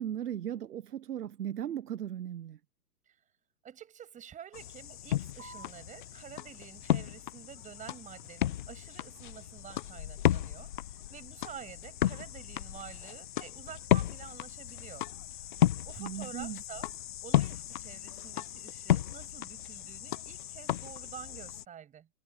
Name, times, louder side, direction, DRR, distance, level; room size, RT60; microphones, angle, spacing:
voice 1, 0.0-2.6 16.0-16.6, right 10 dB, 70° right, 0.9 m, -37 dB
voice 2, 3.6-15.1 15.3-15.5 15.8-16.9 17.2-22.1, right 9 dB, 15° right, 6.2 m, -49 dB
sound 1, 4.5-21.6, left 12 dB, 30° left, 0.6 m, -33 dB
sound 2, 5.4-12.4, right 1 dB, 55° right, 5.2 m, -61 dB
hypercardioid pair, 135°, 48 cm